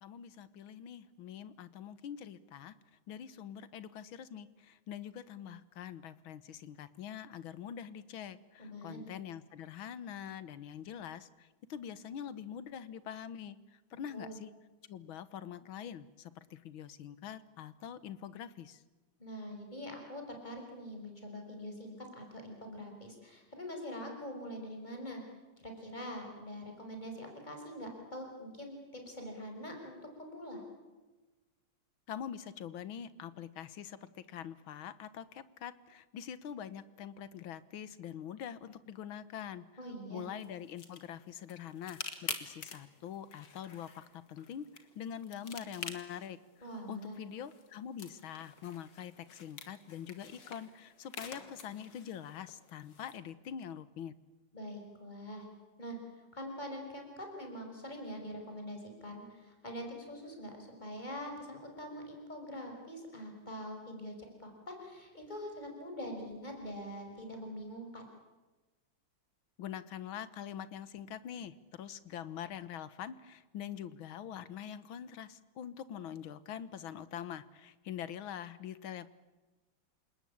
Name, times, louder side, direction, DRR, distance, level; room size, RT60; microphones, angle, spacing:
voice 1, 0.0-2.7 3.1-14.5 14.9-18.8 32.1-39.7 40.1-46.4 46.9-54.1 69.6-79.1, left 9 dB, 80° left, 15 dB, 1.9 m, -44 dB
voice 2, 8.6-9.1 14.1-14.4 19.2-25.2 25.6-30.6 39.8-40.2 46.6-47.2 54.5-55.5 55.8-56.0 56.3-64.1 64.4-68.0, equal, 20° left, 2 dB, 5.7 m, -44 dB
sound 1, 40.2-53.2, left 5 dB, 60° left, 2.7 m, -48 dB
28.5 x 19.0 x 8.7 m, 1.2 s
omnidirectional pair, 2.2 m